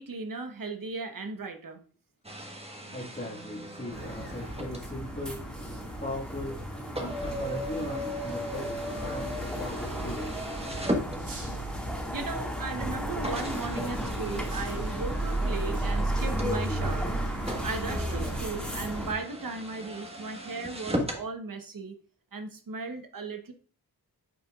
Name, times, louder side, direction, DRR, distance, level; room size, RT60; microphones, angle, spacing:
voice 1, 0.0-1.8 11.6-11.7 12.1-22.0 22.3-23.5, right 3 dB, 55° right, 6 dB, 1.2 m, -37 dB
sound 1, 2.2-11.7 12.4-12.5 13.2-21.3, equal, 15° right, 1.5 m, -38 dB
voice 2, 2.9-5.4 6.0-6.6 7.0-8.7 9.0-10.4, left 1 dB, 25° left, -7 dB, 2.0 m, -38 dB
sound 2, 3.9-19.1, right 1 dB, ahead, 2.1 m, -33 dB
sound 3, 8.8-18.6, equal, 85° right, 3.4 m, -47 dB
9.1 x 4.5 x 2.5 m, 0.41 s
cardioid pair, 45°, 40 cm